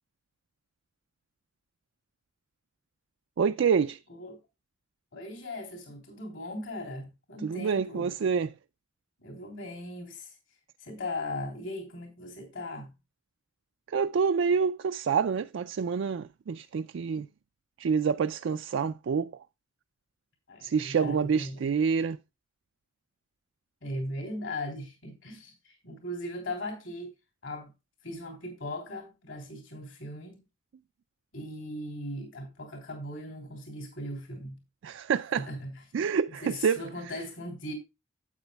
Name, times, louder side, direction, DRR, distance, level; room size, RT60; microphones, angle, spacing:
voice 1, 3.4-4.0 7.4-8.5 13.9-17.3 17.8-19.4 20.6-22.2 34.8-35.5 35.9-36.8, right 6 dB, 65° right, 0.4 m, -27 dB
voice 2, 5.1-8.1 9.2-10.4 10.8-12.9 20.5-21.7 23.8-27.1 27.4-27.7 28.0-30.4 31.3-34.6 35.3-35.8 36.4-37.7, left 1 dB, 70° left, 3.2 m, -38 dB
12.0 x 8.6 x 2.2 m
head